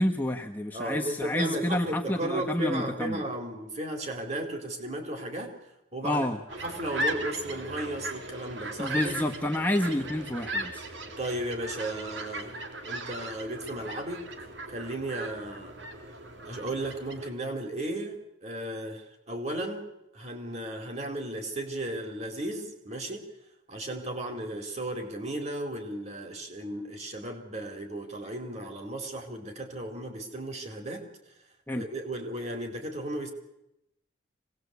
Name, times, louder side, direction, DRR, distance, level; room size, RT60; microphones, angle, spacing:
voice 1, 0.0-3.2 6.0-6.4 8.8-10.9 31.7-31.8, left 1 dB, 10° left, 1 dB, 1.4 m, -29 dB
voice 2, 0.7-5.5 5.9-6.3 6.6-9.2 11.2-15.8 16.4-19.9 20.1-23.2 23.7-31.0 31.7-33.3, right 1 dB, 35° right, 4 dB, 4.2 m, -35 dB
sound 1, 6.5-17.3, right 1 dB, 70° right, 2.8 m, -37 dB
25.0 x 19.0 x 8.3 m, 0.85 s
head